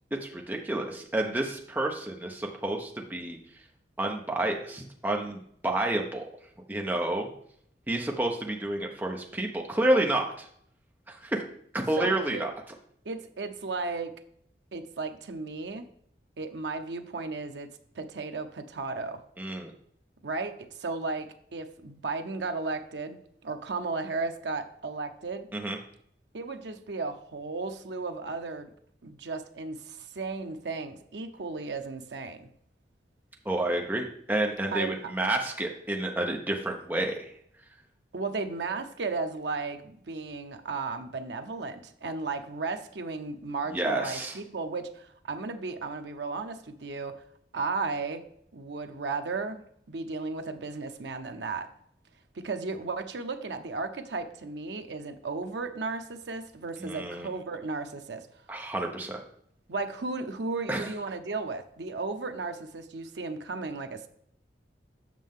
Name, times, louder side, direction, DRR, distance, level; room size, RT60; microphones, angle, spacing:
voice 1, 0.2-3.4 4.0-6.3 6.7-7.3 7.9-10.5 11.1-11.4 11.7-12.5 19.4-19.7 25.5-25.8 33.4-37.3 43.7-44.3 56.8-57.3 58.5-59.2 60.7-60.9, right 1 dB, 10° right, 1 dB, 0.7 m, -29 dB
voice 2, 12.0-12.5 13.0-14.2 14.7-15.8 16.4-17.7 17.9-19.2 20.2-25.5 26.3-28.7 29.0-32.5 34.7-35.1 38.1-47.2 47.5-48.2 48.5-49.6 49.9-51.7 52.3-58.3 59.7-64.1, right 3 dB, 85° right, 7 dB, 0.7 m, -35 dB
7.5 x 6.3 x 3.6 m, 0.67 s
head